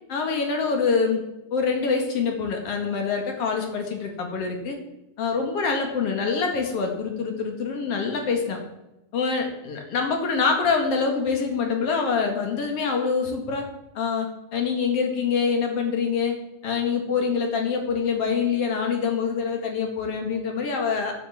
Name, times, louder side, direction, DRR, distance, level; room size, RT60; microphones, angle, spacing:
voice 1, 0.1-1.2 1.5-4.8 5.2-8.6 9.1-13.6 14.0-16.3 16.6-21.1, left 5 dB, 50° left, 3 dB, 2.2 m, -25 dB
10.5 x 8.1 x 7.3 m, 0.94 s
omnidirectional pair, 4.8 m